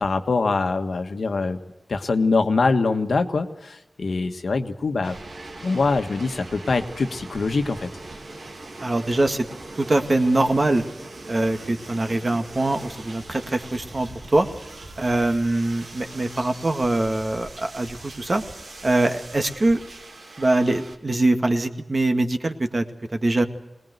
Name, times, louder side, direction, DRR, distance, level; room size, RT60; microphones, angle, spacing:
voice 1, 0.0-1.6 1.9-5.2 5.6-7.9, left 3 dB, 80° left, 6 dB, 1.5 m, -23 dB
sound 1, 5.0-21.0, right 2 dB, 80° right, 3.0 m, -41 dB
voice 2, 8.8-9.5 9.8-10.8 11.3-14.5 15.0-18.4 18.8-19.8 20.4-23.4, right 2 dB, 40° right, 6 dB, 1.9 m, -23 dB
22.5 x 19.5 x 8.1 m, 0.93 s
wide cardioid pair, 75°, 0 cm